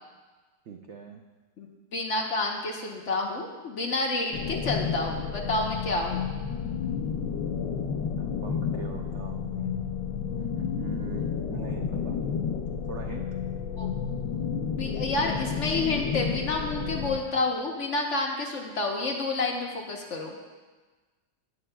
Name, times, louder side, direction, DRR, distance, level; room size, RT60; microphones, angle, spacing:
voice 1, 0.7-1.2 8.2-9.9 10.4-12.2 12.8-13.2, right 6 dB, 85° right, 3 dB, 0.6 m, -42 dB
voice 2, 1.6-6.2 13.8-13.9 14.7-20.4, left 2 dB, 50° left, 0 dB, 1.0 m, -29 dB
sound 1, 4.3-17.2, left 6 dB, 85° left, 1.4 m, -31 dB
18.5 x 7.2 x 2.2 m, 1.3 s
omnidirectional pair, 1.9 m